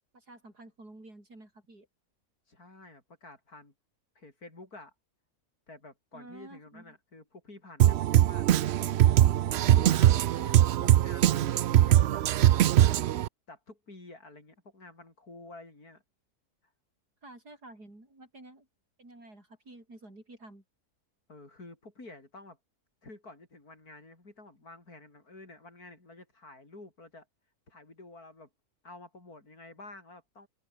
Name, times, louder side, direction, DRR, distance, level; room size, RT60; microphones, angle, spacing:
voice 1, 0.1-1.9 6.1-6.9 17.2-18.7 19.0-20.6, right 2 dB, 90° right, 8.7 m, -50 dB
voice 2, 2.5-3.7 4.2-4.9 5.7-8.9 9.5-13.1 13.5-16.0 21.3-22.6 23.0-27.3 27.7-28.5 28.8-30.5, left 2 dB, 70° left, 6.2 m, -50 dB
Drum kit, 7.8-13.3, right 12 dB, 70° right, 0.6 m, -22 dB
open air
omnidirectional pair, 1.6 m